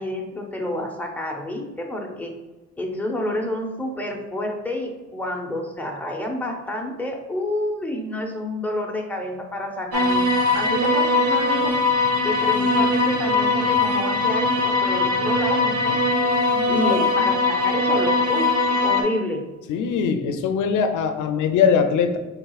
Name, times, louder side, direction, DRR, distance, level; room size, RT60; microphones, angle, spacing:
voice 1, 0.0-2.3 2.8-10.2 10.5-11.7 12.2-16.0 16.7-19.5, left 1 dB, 5° left, 0 dB, 0.8 m, -29 dB
sound 1, 9.9-19.0, left 2 dB, 55° right, 0.9 m, -21 dB
voice 2, 16.5-17.3 19.7-22.2, left 6 dB, 80° left, 7 dB, 0.6 m, -22 dB
4.5 x 3.7 x 2.4 m, 1.2 s
cardioid pair, 90°, 30 cm